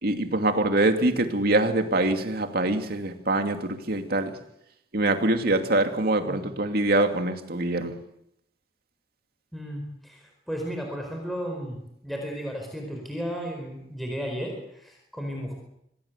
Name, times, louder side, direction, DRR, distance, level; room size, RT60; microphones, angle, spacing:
voice 1, 0.0-4.3 4.9-8.0, right 2 dB, 60° right, 6 dB, 2.6 m, -24 dB
voice 2, 9.5-11.8 12.0-15.5, equal, ahead, 1 dB, 4.6 m, -34 dB
26.5 x 18.0 x 8.2 m, 0.77 s
head